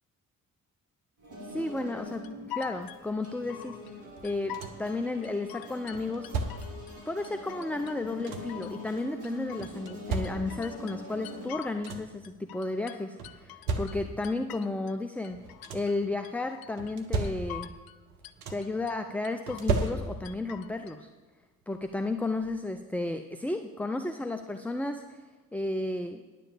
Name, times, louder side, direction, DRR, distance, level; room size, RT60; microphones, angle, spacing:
sound 1, 1.2-11.5, left 1 dB, 45° right, 4.2 m, -44 dB
voice 1, 1.5-3.8 4.2-6.3 7.1-15.4 15.7-17.7 18.5-21.1 21.7-25.2 25.5-26.2, left 2 dB, 5° left, 7 dB, 0.6 m, -33 dB
sound 2, 2.2-3.9 4.2-4.9 5.2-7.0 7.2-8.0 8.2-10.0 10.2-12.0 12.2-15.0 15.2-16.0 16.2-17.0 17.2-18.0 18.2-18.9 19.2-20.0 20.2-20.9, left 13 dB, 55° left, 0.6 m, -45 dB
sound 3, 4.2-5.0 5.9-6.9 7.8-8.7 9.6-10.8 11.4-11.5 11.7-12.3 13.2-14.3 15.3-16.1 16.8-17.8 18.1-18.8 19.5-20.5 21.8-21.9 22.4-22.6, right 3 dB, 85° right, 0.9 m, -35 dB
10.0 x 7.7 x 6.9 m, 1.3 s
hypercardioid pair, 40°, 43 cm